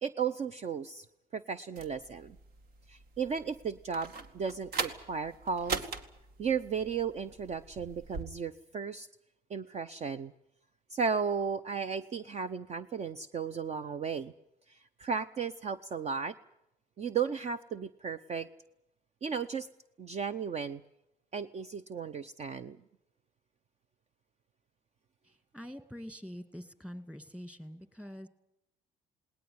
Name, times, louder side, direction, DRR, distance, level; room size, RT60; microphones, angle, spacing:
voice 1, 0.0-1.1 1.3-2.4 2.9-5.8 6.4-9.1 9.5-10.3 10.9-14.3 14.7-16.3 17.0-18.5 19.2-19.7 20.0-20.8 21.3-22.8, right 6 dB, 40° right, 13 dB, 0.8 m, -35 dB
sound 1, 1.8-8.2, right 4 dB, 65° right, 2.2 m, -41 dB
voice 2, 25.2-28.3, equal, 5° right, 11 dB, 2.2 m, -45 dB
19.5 x 19.0 x 9.6 m, 0.83 s
cardioid pair, 110°, 17 cm